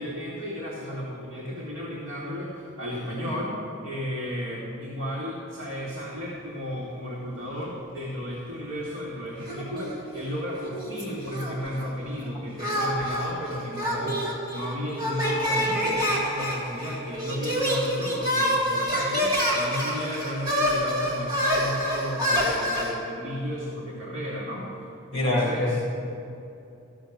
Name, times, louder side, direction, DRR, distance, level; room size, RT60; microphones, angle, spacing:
voice 1, 0.0-3.6 3.8-24.7 25.1-25.8, equal, 60° right, -6 dB, 1.8 m, -33 dB
sound 1, 9.5-10.3 10.6-11.9 12.6-22.9, equal, 15° right, 2.0 m, -27 dB
voice 2, 25.1-25.8, left 1 dB, 20° left, -3 dB, 2.1 m, -24 dB
14.0 x 5.9 x 6.4 m, 2.7 s
head